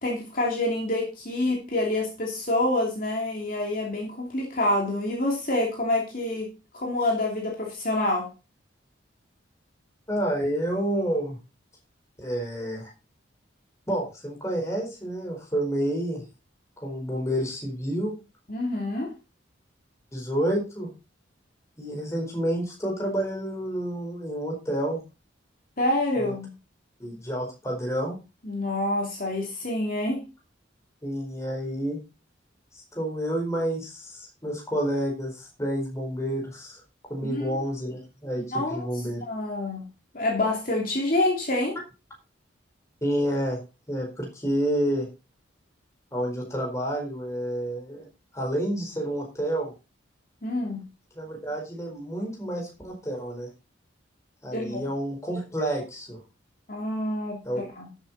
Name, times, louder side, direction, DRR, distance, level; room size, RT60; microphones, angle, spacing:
voice 1, 0.0-6.5 6.7-8.3 18.5-19.1 25.8-26.5 28.4-30.2 37.2-37.6 38.4-38.9 39.2-39.8 40.1-41.8 50.4-50.8 54.5-54.8 56.7-57.4 57.7-57.9, left 1 dB, 45° left, -1 dB, 2.9 m, -27 dB
voice 2, 10.1-11.4 12.2-12.9 13.9-16.2 16.8-18.1 20.1-20.9 21.8-25.0 26.2-26.3 27.0-28.2 31.0-32.0 32.7-36.8 37.1-39.2 43.0-43.6 43.9-45.1 46.1-48.1 48.3-49.7 51.1-53.5 54.4-56.2 57.4-57.6, right 1 dB, 15° left, 0 dB, 4.4 m, -29 dB
12.5 x 8.2 x 4.2 m, 0.30 s
head